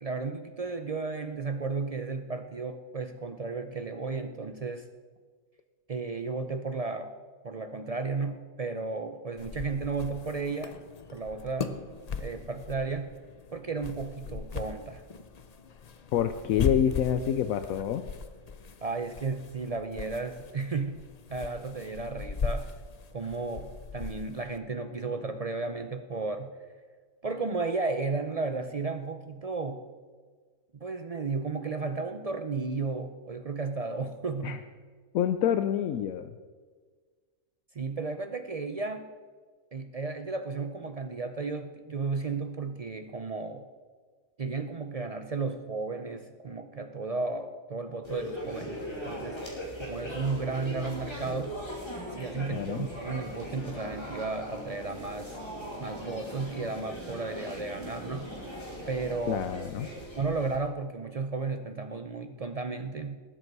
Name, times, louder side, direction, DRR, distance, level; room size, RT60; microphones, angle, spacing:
voice 1, 0.0-4.8 5.9-7.1 7.4-10.8 11.1-11.8 12.2-13.1 13.5-15.0 18.8-22.7 23.1-26.5 27.2-29.8 30.7-34.6 37.7-39.1 39.7-43.6 44.4-49.4 49.8-51.6 52.2-55.5 55.8-58.3 58.9-59.4 60.2-63.2, right 4 dB, 60° right, 8 dB, 0.4 m, -34 dB
sound 1, 9.4-24.6, left 5 dB, 45° left, 0.5 m, -38 dB
voice 2, 16.1-18.0 34.4-34.6 35.1-36.3 52.5-52.9 59.3-59.9, left 9 dB, 75° left, 10 dB, 1.0 m, -27 dB
sound 2, 48.0-60.6, equal, 20° left, 2.7 m, -39 dB
19.0 x 8.0 x 4.7 m, 1.5 s
omnidirectional pair, 1.5 m